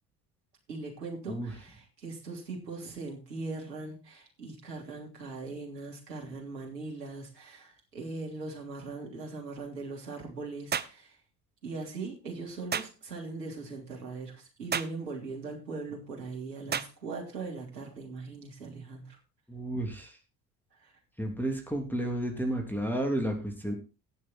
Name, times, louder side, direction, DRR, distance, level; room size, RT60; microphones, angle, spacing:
voice 1, 0.7-11.2 11.6-19.2 20.8-20.9, right 3 dB, 80° right, 1 dB, 3.3 m, -40 dB
sound 1, 10.7-11.0 12.7-12.9 14.7-15.0 16.7-16.9, right 7 dB, 20° right, 0.9 m, -31 dB
voice 2, 19.5-20.1 21.2-23.7, right 1 dB, 5° left, 3 dB, 3.2 m, -31 dB
17.5 x 6.4 x 4.5 m, 0.32 s
figure-of-eight pair, 60°, 48 cm